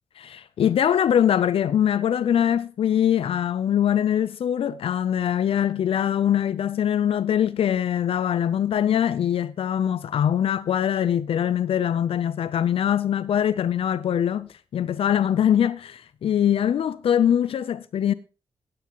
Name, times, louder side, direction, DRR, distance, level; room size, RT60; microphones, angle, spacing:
voice 1, 0.2-18.1, left 9 dB, 85° left, 0.4 m, -23 dB
17.0 x 8.5 x 2.9 m
cardioid pair, 70°, 9 cm